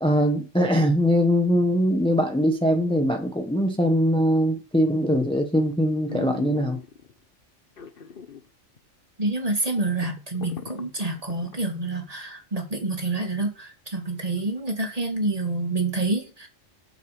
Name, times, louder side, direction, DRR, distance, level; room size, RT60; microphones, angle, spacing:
voice 1, 0.0-6.8, equal, 5° left, 1.1 m, -22 dB
sound 1, 4.9-5.3 5.7-5.8 6.1-7.1 7.8-8.5 8.8-8.9 9.3-9.4 9.7-11.5 12.0-12.1, left 7 dB, 45° left, 1.0 m, -38 dB
voice 2, 9.2-16.5, right 2 dB, 30° right, 2.0 m, -27 dB
7.7 x 6.6 x 6.7 m
omnidirectional pair, 1.4 m